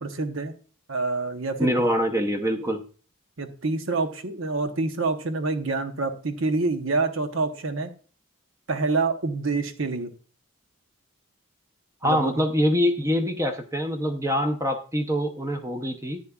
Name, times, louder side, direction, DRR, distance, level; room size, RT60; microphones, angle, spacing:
voice 1, 0.0-0.5 0.9-1.8 3.4-7.9 8.7-10.1 12.0-12.4, right 3 dB, 65° right, 7 dB, 0.9 m, -27 dB
voice 2, 1.6-2.8 12.0-16.2, equal, 15° right, 7 dB, 0.7 m, -24 dB
10.5 x 8.7 x 2.3 m, 0.40 s
head